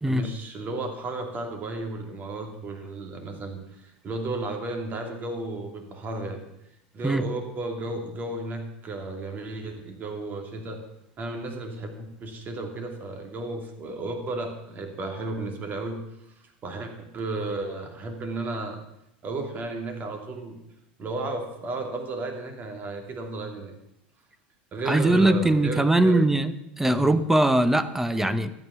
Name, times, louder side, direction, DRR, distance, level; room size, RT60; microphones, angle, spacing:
voice 1, 0.0-6.4 6.9-10.8 11.2-16.0 16.6-18.8 19.2-20.6 21.0-23.7 24.7-26.2 26.8-27.1, right 2 dB, 35° right, 2.9 m, -33 dB
voice 2, 24.9-28.5, right 1 dB, 5° right, 0.9 m, -21 dB
13.0 x 9.3 x 7.1 m
hypercardioid pair, 105°, 5 cm